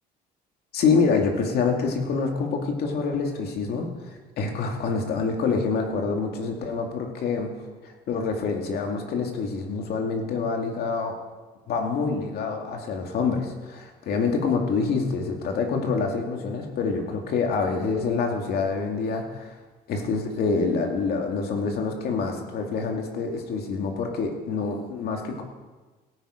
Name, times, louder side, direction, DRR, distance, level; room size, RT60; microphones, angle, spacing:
voice 1, 0.7-3.9 4.4-7.5 8.1-11.2 11.7-19.5 19.9-25.4, left 4 dB, 65° left, 2 dB, 2.3 m, -26 dB
17.0 x 9.4 x 5.1 m, 1.3 s
cardioid pair, 110°, 17 cm